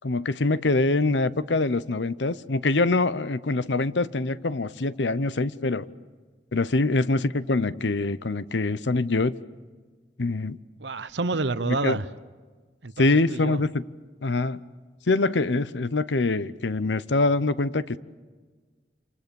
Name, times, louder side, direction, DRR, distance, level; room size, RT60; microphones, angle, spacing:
voice 1, 0.0-5.9 6.5-9.4 10.2-10.6 11.8-12.0 13.0-13.8 14.2-14.6 15.1-18.0, left 2 dB, 90° left, 0.9 m, -24 dB
voice 2, 10.8-12.1 12.8-13.6, right 3 dB, 75° right, 0.9 m, -29 dB
28.0 x 26.5 x 7.1 m
head